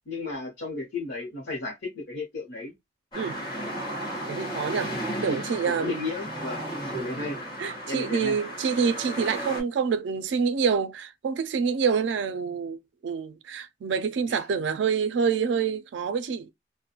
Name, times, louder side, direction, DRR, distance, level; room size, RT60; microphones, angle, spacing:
voice 1, 0.1-2.7 3.6-3.7 5.1-5.4 5.7-7.4 7.9-8.4 14.3-14.4, left 3 dB, 90° left, 0.8 m, -34 dB
sound 1, 3.1-9.6, equal, 25° left, 1.2 m, -34 dB
voice 2, 4.3-6.0 7.6-16.5, right 6 dB, 85° right, 0.3 m, -27 dB
2.3 x 2.1 x 2.8 m
head